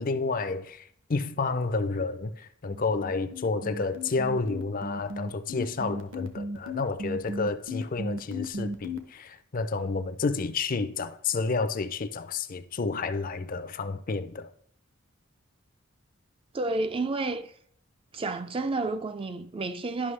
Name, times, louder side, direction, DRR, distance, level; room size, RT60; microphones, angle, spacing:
voice 1, 0.0-14.5, left 4 dB, 40° left, 0.5 m, -30 dB
sound 1, 2.7-9.0, left 1 dB, 65° right, 1.0 m, -35 dB
voice 2, 16.5-17.5 18.1-20.1, right 3 dB, 25° right, 0.4 m, -30 dB
11.0 x 5.7 x 3.3 m
head